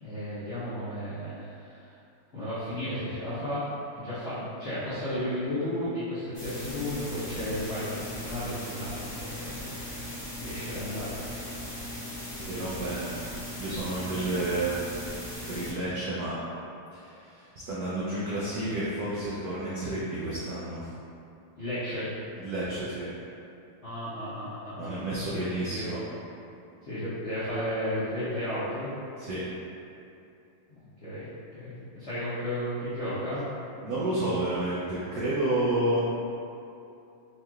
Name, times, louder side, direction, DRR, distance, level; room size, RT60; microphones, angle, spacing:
voice 1, 0.0-1.9 2.3-11.2 21.6-22.1 23.8-25.0 25.3-25.9 26.9-28.9 31.0-33.4, left 1 dB, 55° left, -14 dB, 0.7 m, -34 dB
sound 1, 6.3-15.7, left 1 dB, 15° left, 0.9 m, -38 dB
voice 2, 12.5-13.1 13.5-14.8 15.5-16.4 16.9-20.9 22.4-23.1 24.8-26.0 29.2-29.4 33.8-36.0, right 1 dB, 80° right, -8 dB, 0.8 m, -30 dB
4.6 x 3.0 x 2.3 m, 2.7 s
omnidirectional pair, 2.3 m